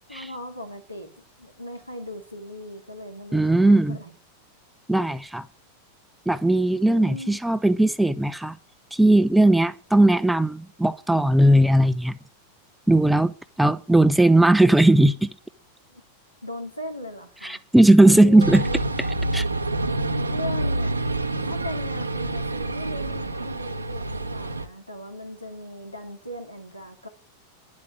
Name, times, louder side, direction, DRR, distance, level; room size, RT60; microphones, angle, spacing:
voice 1, 0.1-1.1 1.4-4.1 6.8-7.4 15.9-16.0 16.4-17.6 18.0-18.8 19.2-19.4 20.3-21.0 21.4-27.1, left 1 dB, 85° left, 2.9 m, -37 dB
voice 2, 3.3-4.0 4.9-5.4 6.3-8.6 8.9-12.2 12.9-13.3 13.6-15.3 17.4-18.6 19.3-19.4, right 1 dB, 5° right, 0.7 m, -18 dB
sound 1, 18.4-24.7, right 2 dB, 80° right, 1.1 m, -27 dB
11.0 x 8.4 x 9.2 m
figure-of-eight pair, 90°, 0 cm